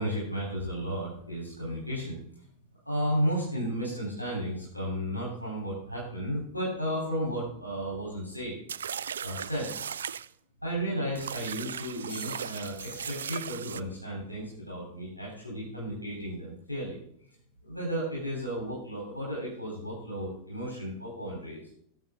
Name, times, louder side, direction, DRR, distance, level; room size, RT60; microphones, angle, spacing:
voice 1, 0.0-2.2 2.9-8.6 9.2-9.7 10.6-17.0 17.6-21.6, equal, 85° left, -4 dB, 3.6 m, -33 dB
sound 1, 8.7-10.3 11.1-13.8, right 8 dB, 65° right, 0.3 m, -37 dB
sound 2, 12.1-13.7, left 3 dB, 60° left, 4.2 m, -51 dB
19.0 x 7.0 x 3.7 m, 0.68 s
figure-of-eight pair, 90°, 0 cm